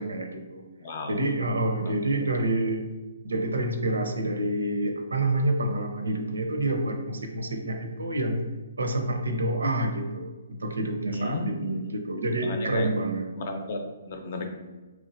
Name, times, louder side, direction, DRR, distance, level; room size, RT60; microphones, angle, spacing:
voice 1, 0.0-0.6 1.1-2.8 3.2-8.5 8.8-13.3, right 1 dB, 85° right, 5 dB, 0.5 m, -28 dB
voice 2, 0.8-1.2 1.8-1.9 11.1-11.9 12.4-12.9 13.3-14.5, left 1 dB, 55° left, 5 dB, 0.6 m, -33 dB
3.4 x 3.1 x 2.5 m, 1.2 s
hypercardioid pair, 135°, 0 cm